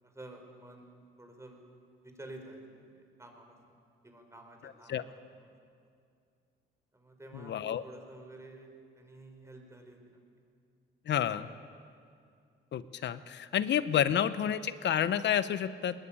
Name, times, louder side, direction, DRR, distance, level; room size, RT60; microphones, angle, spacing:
voice 1, 0.0-0.9 1.2-1.6 2.0-3.8 4.0-5.0 5.3-5.5 6.9-10.2 11.5-11.6, right 2 dB, 15° right, 4 dB, 4.5 m, -51 dB
voice 2, 7.4-7.8 11.1-11.5 12.7-15.9, left 9 dB, 65° left, 14 dB, 1.0 m, -29 dB
20.5 x 20.0 x 8.9 m, 2.4 s
cardioid pair, 90°, 20 cm